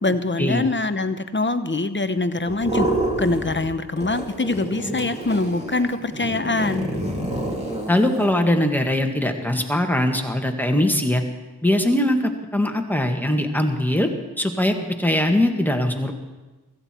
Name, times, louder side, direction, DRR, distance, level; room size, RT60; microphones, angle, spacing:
voice 1, 0.0-2.9 3.2-6.9, left 2 dB, 30° left, 10 dB, 1.0 m, -24 dB
sound 1, 2.5-3.7 4.0-8.3, right 1 dB, 15° right, 3.5 m, -28 dB
voice 2, 7.9-11.2 11.6-12.2 12.5-14.1 14.4-16.1, left 1 dB, 5° left, 3 dB, 1.9 m, -21 dB
16.0 x 14.5 x 4.5 m, 1.2 s
cardioid pair, 40°, 40 cm